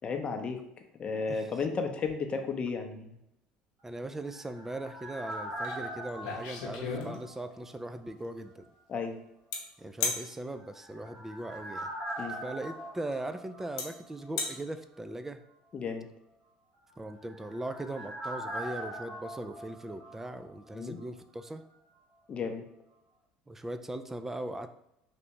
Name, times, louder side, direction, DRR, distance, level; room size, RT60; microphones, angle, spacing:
voice 1, 0.0-0.6 1.0-3.2 6.9-7.2 8.9-9.2 12.2-12.4 15.7-16.1 20.7-21.0 22.3-22.6, left 5 dB, 35° left, 5 dB, 0.6 m, -34 dB
voice 2, 3.8-8.7 9.8-11.9 12.4-15.4 17.0-21.6 23.5-24.8, right 1 dB, 10° right, 9 dB, 0.3 m, -39 dB
sound 1, 4.0-7.8 8.1-8.2 10.6-14.3 14.5-14.6 16.9-20.8 21.0-21.1, right 1 dB, 50° right, 1.4 m, -42 dB
sound 2, 5.6-5.8 6.1-7.5 9.5-9.6 10.0-10.2 12.1-12.2 13.1-13.2 13.8-13.9 14.2-14.5, left 4 dB, 80° left, 0.7 m, -33 dB
3.3 x 2.6 x 3.0 m, 0.80 s
hypercardioid pair, 80°, 3 cm